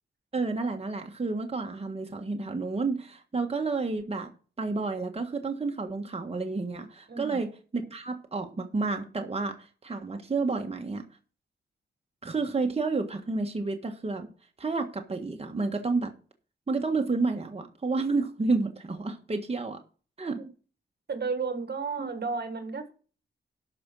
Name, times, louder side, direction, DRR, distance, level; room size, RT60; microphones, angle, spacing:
voice 1, 0.3-4.3 4.6-11.0 12.2-14.3 14.6-16.1 16.7-19.8 20.2-20.4 22.0-22.1, right 3 dB, 30° right, 1.5 m, -30 dB
voice 2, 7.1-7.4 20.4-20.5 21.1-22.9, right 4 dB, 60° right, 1.8 m, -33 dB
12.5 x 5.2 x 6.2 m
wide cardioid pair, 90°, 19 cm